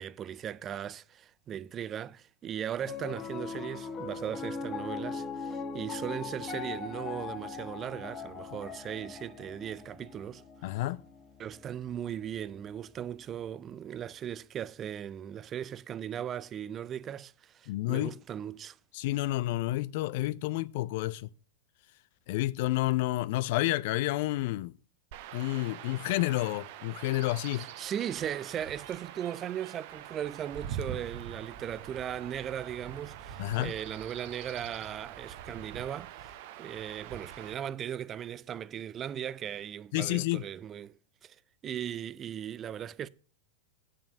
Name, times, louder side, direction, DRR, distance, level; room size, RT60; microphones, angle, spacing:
voice 1, 0.0-10.4 11.4-18.8 27.6-40.9 41.2-41.4 41.6-43.1, right 9 dB, 25° right, 0.3 m, -38 dB
Piano, 2.8-13.1, left 5 dB, 25° left, 1.3 m, -40 dB
voice 2, 10.6-11.0 17.7-18.1 18.9-21.3 22.3-24.7 25.3-27.7 33.4-33.7 39.9-40.4, left 17 dB, 50° left, 0.3 m, -30 dB
Chirp tweet / Wind / Stream, 25.1-37.5, right 9 dB, 50° right, 0.7 m, -44 dB
8.5 x 5.8 x 6.2 m
figure-of-eight pair, 90°, 0 cm